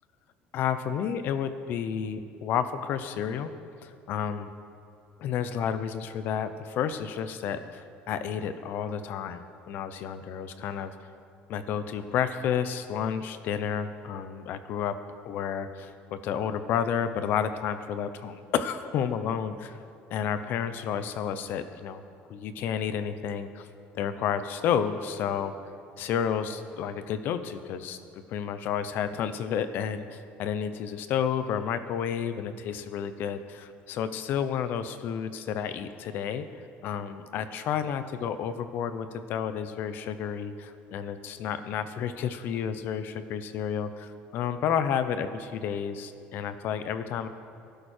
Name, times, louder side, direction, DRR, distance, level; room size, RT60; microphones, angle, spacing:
voice 1, 0.5-3.5 3.8-4.5 5.2-10.9 11.5-15.0 15.2-19.8 20.1-22.0 22.3-23.7 23.9-25.5 26.0-28.0 28.3-47.3, left 8 dB, 50° left, 11 dB, 0.9 m, -31 dB
23.5 x 11.5 x 4.5 m, 2.4 s
cardioid pair, 180°, 4 cm